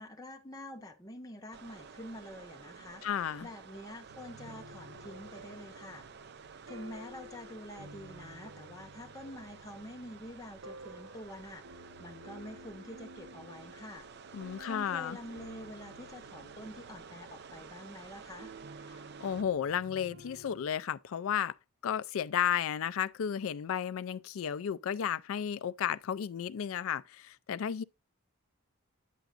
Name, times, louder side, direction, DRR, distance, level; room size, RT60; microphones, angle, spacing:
voice 1, 0.0-3.0 3.4-6.1 6.7-11.7 12.0-14.1 14.6-18.5, left 1 dB, 15° left, 0.7 m, -47 dB
sound 1, 1.5-19.4, right 6 dB, 50° right, 0.4 m, -52 dB
voice 2, 3.0-3.5 14.3-15.2 19.2-21.5 21.8-27.8, left 8 dB, 70° left, 0.3 m, -33 dB
sound 2, 4.1-20.6, right 1 dB, 75° right, 0.8 m, -53 dB
9.2 x 6.9 x 2.5 m
head